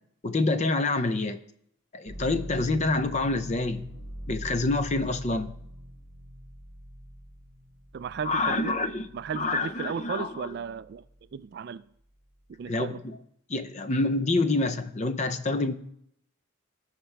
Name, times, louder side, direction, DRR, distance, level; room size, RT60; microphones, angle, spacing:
voice 1, 0.2-1.4 1.9-3.8 4.3-5.5 8.2-9.1 9.3-10.3 12.7-13.2 13.5-15.7, left 2 dB, 35° left, 0.6 m, -27 dB
sound 1, 2.1-9.9 10.4-11.2, equal, 55° left, 4.4 m, -43 dB
voice 2, 7.9-8.8 9.1-11.0 11.3-11.8 12.5-13.0, right 6 dB, 55° right, 0.3 m, -35 dB
17.5 x 5.9 x 3.4 m
head